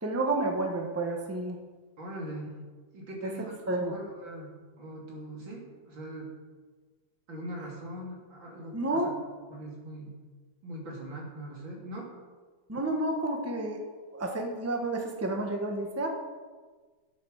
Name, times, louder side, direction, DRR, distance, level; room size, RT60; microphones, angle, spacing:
voice 1, 0.0-1.6 3.7-3.9 8.7-9.1 12.7-13.8 14.1-16.1, right 2 dB, 10° right, 2 dB, 1.2 m, -30 dB
voice 2, 2.0-2.6 2.9-3.6 3.9-6.3 7.3-9.1 9.5-10.2 10.6-12.1, right 1 dB, 80° right, -2 dB, 3.5 m, -41 dB
12.5 x 7.9 x 6.5 m, 1.4 s
omnidirectional pair, 2.1 m